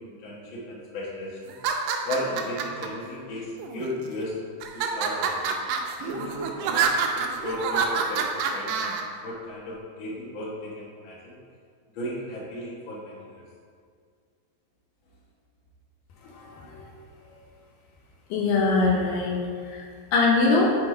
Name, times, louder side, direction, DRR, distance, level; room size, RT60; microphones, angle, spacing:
voice 1, 0.0-1.5 2.0-4.3 4.7-5.5 6.0-11.3 11.9-13.4, left 1 dB, 50° left, -6 dB, 1.6 m, -35 dB
sound 1, 1.5-2.9 3.6-4.1 4.6-9.0, right 6 dB, 90° right, 2.3 m, -27 dB
voice 2, 16.2-16.9 18.3-19.4 19.7-19.8 20.1-20.8, left 3 dB, 75° left, -2 dB, 2.3 m, -23 dB
6.5 x 4.4 x 4.3 m, 2.1 s
omnidirectional pair, 4.0 m